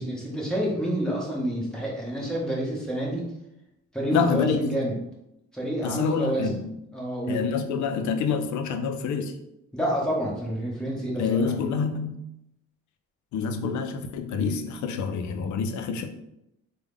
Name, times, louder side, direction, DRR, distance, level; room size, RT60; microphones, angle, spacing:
voice 1, 0.0-3.3 3.9-4.9 5.5-6.5 6.9-7.4 9.7-11.4 13.5-13.6, right 1 dB, ahead, -4 dB, 1.2 m, -28 dB
voice 2, 4.1-4.8 5.8-6.7 7.3-9.4 11.2-12.2 13.3-16.1, left 6 dB, 70° left, 7 dB, 0.5 m, -27 dB
3.5 x 2.2 x 3.4 m, 0.83 s
cardioid pair, 90°, 30 cm